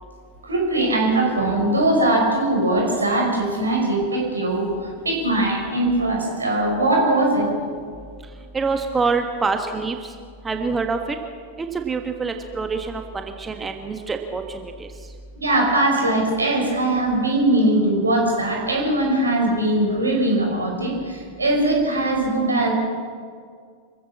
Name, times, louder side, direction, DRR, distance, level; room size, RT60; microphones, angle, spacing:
voice 1, 0.4-7.5 15.4-22.7, right 1 dB, 75° right, 0 dB, 5.8 m, -21 dB
voice 2, 8.5-10.0 10.4-11.0 11.7-14.9, right 4 dB, 15° right, 6 dB, 1.5 m, -25 dB
26.0 x 15.5 x 7.3 m, 2.1 s
figure-of-eight pair, 90°, 0 cm